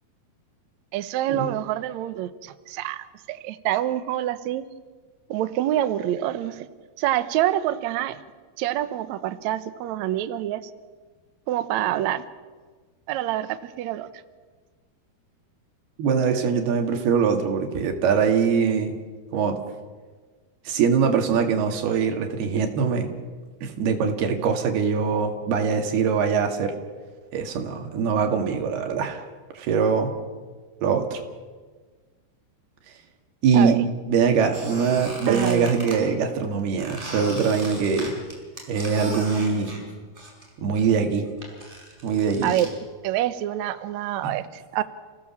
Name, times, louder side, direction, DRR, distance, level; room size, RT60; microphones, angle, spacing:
voice 1, 0.9-4.6 5.3-6.7 7.0-8.2 8.6-10.7 11.5-12.2 13.1-14.1 33.5-33.8 35.3-35.7 42.4-42.7 43.0-44.8, right 13 dB, 90° right, 12 dB, 1.6 m, -26 dB
voice 2, 16.0-19.0 19.3-19.6 20.7-23.1 23.6-26.8 27.3-29.2 29.6-30.1 30.8-31.2 33.4-33.8 34.1-38.1 38.7-39.8 40.6-41.3 42.0-42.5, right 6 dB, 75° right, 4 dB, 4.0 m, -22 dB
Squeak, 34.5-36.0 36.8-40.5 40.7-42.7, right 1 dB, 10° right, 5.2 m, -38 dB
29.5 x 17.5 x 7.3 m, 1.4 s
omnidirectional pair, 4.7 m